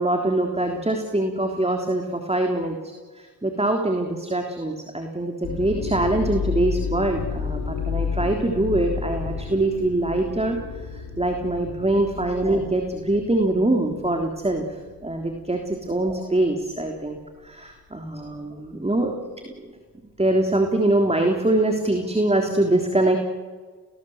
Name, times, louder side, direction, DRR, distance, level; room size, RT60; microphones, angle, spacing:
voice 1, 0.0-10.6 10.9-14.6 15.0-19.1 19.6-19.7 20.2-23.2, right 1 dB, 15° right, 3 dB, 3.4 m, -23 dB
sound 1, 5.4-14.9 15.2-15.7 16.4-16.6, left 5 dB, 90° left, 3.4 m, -31 dB
29.0 x 19.0 x 8.0 m, 1.5 s
supercardioid pair, 55°, 43 cm